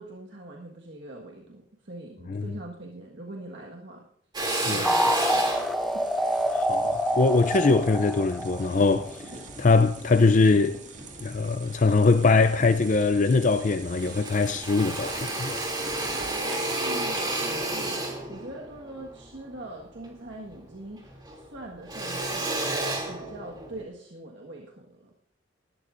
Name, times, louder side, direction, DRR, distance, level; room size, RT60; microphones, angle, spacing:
voice 1, 0.0-4.1 4.6-5.7 5.9-6.1 16.2-22.8 23.1-25.1, right 1 dB, 60° right, 1.6 m, -43 dB
Drill, 4.3-8.9 9.4-10.6 11.1-12.0 12.4-12.5 12.7-13.7 14.0-20.7 21.0-23.8, right 2 dB, 20° right, 2.7 m, -32 dB
voice 2, 4.5-4.9 6.5-9.2 9.6-10.8 11.2-15.6, left 3 dB, 40° left, 0.5 m, -22 dB
sound 1, 4.8-9.3, equal, ahead, 0.6 m, -26 dB
sound 2, 5.5-17.5, right 4 dB, 40° right, 2.1 m, -44 dB
19.5 x 12.5 x 2.6 m
head